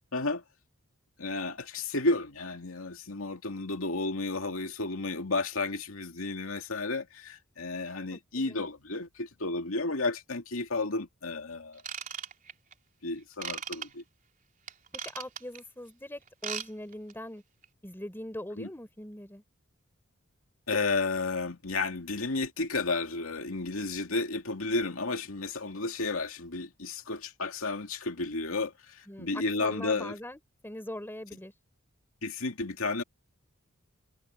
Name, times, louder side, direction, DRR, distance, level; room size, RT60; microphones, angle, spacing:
voice 1, 0.1-0.4 1.2-11.8 13.0-14.0 18.6-18.7 20.7-30.1 32.2-33.0, left 3 dB, 75° left, 2.5 m, -32 dB
voice 2, 8.1-8.6 15.1-17.4 17.8-19.4 29.1-31.5, left 1 dB, 10° left, 4.3 m, -41 dB
Ratchet pawl / Tools, 11.8-12.7 13.4-13.9 14.7-15.6 16.3-16.7 16.9-17.1 17.6-17.7, right 8 dB, 40° right, 3.8 m, -37 dB
head